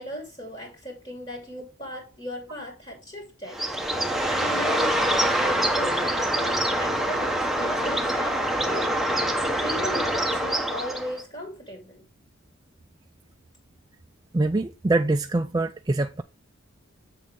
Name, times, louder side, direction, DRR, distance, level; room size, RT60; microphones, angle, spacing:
voice 1, 0.0-3.7 3.9-6.0 6.3-8.9 9.6-12.1, equal, 25° left, 3.0 m, -37 dB
Bird, 3.5-11.2, right 1 dB, ahead, 1.0 m, -25 dB
voice 2, 14.3-16.2, right 2 dB, 20° right, 0.3 m, -24 dB
7.7 x 6.6 x 3.4 m
head